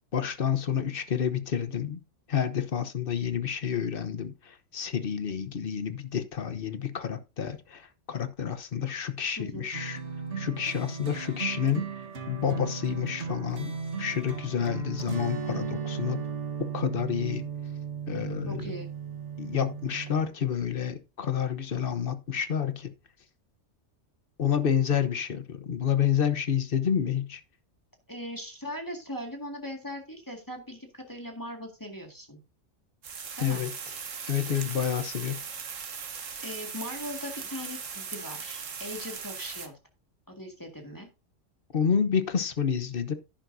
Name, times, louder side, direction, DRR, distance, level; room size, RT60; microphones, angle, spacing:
voice 1, 0.1-2.0 2.3-10.0 10.4-11.9 12.3-16.2 16.6-17.5 18.1-18.7 19.4-22.9 24.4-27.4 33.4-33.7 34.2-35.4 41.7-43.1, left 8 dB, 50° left, 1.1 m, -29 dB
voice 2, 9.4-9.7 18.5-18.9 28.1-32.4 33.4-33.6 34.5-34.7 36.4-39.8 40.3-41.1, equal, 15° left, 2.0 m, -39 dB
sound 1, 9.7-20.2, right 6 dB, 65° right, 1.7 m, -36 dB
sound 2, 33.0-39.7, right 6 dB, 85° right, 1.6 m, -39 dB
11.0 x 10.0 x 2.7 m
omnidirectional pair, 1.3 m